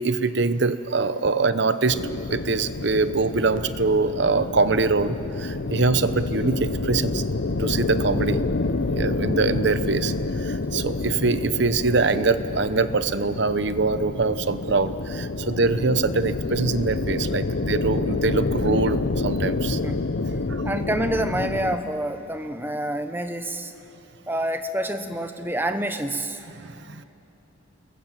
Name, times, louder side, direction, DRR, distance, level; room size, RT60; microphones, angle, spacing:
voice 1, 0.0-7.2 7.6-8.4 8.9-10.1 10.4-19.8 20.5-20.6 26.6-27.0, right 3 dB, 60° right, 12 dB, 0.9 m, -23 dB
sound 1, 1.9-21.8, left 3 dB, 65° left, 0.7 m, -28 dB
voice 2, 19.6-20.0 20.6-23.7 24.3-26.4, right 1 dB, 10° right, 8 dB, 1.0 m, -28 dB
28.0 x 20.5 x 7.6 m, 2.9 s
head